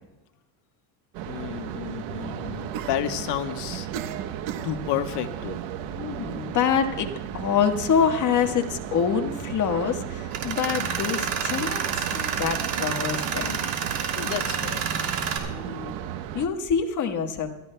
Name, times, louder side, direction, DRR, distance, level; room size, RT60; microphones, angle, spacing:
sound 1, 1.1-16.5, right 10 dB, 75° right, 1.2 m, -35 dB
voice 1, 1.3-3.9 4.6-5.7 14.1-14.9, left 10 dB, 55° left, 6 dB, 1.3 m, -31 dB
voice 2, 5.9-13.6 15.5-15.9 16.3-17.5, left 7 dB, 40° left, 5 dB, 1.5 m, -26 dB
Tools, 10.3-15.4, right 7 dB, 60° right, 2.8 m, -29 dB
26.5 x 13.0 x 2.2 m, 1.0 s
cardioid pair, 130°, 48 cm